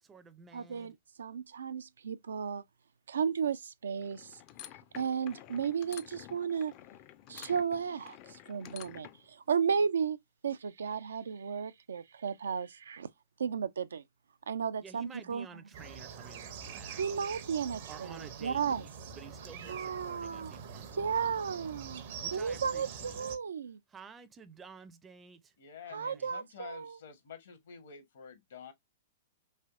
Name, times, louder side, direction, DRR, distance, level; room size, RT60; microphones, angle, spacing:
voice 1, 0.0-1.0 14.8-17.3 17.9-21.5 22.0-23.2 23.9-25.5 25.9-26.3, right 5 dB, 20° right, 0.5 m, -52 dB
voice 2, 0.5-2.6 3.1-4.4 4.9-6.7 7.3-10.2 10.4-13.1 13.4-14.0 14.5-15.5 17.0-18.8 19.7-20.6 20.9-22.0 22.3-23.8 25.9-27.0, right 6 dB, 80° right, 0.3 m, -34 dB
sound 1, 4.0-9.3, left 12 dB, 40° left, 0.4 m, -51 dB
sound 2, 15.7-23.4, right 7 dB, 60° right, 0.7 m, -45 dB
voice 3, 25.6-28.7, left 6 dB, 65° left, 0.9 m, -49 dB
3.2 x 2.6 x 2.4 m
hypercardioid pair, 115°, 0 cm